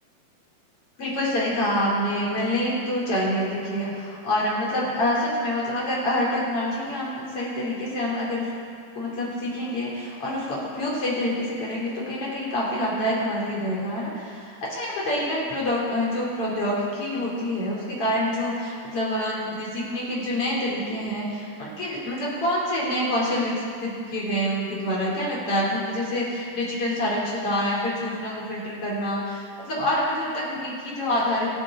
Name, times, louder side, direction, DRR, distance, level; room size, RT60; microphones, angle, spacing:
voice 1, 1.0-8.5 8.9-31.5, left 1 dB, 40° left, -5 dB, 3.9 m, -26 dB
25.0 x 9.4 x 3.8 m, 2.3 s
omnidirectional pair, 4.3 m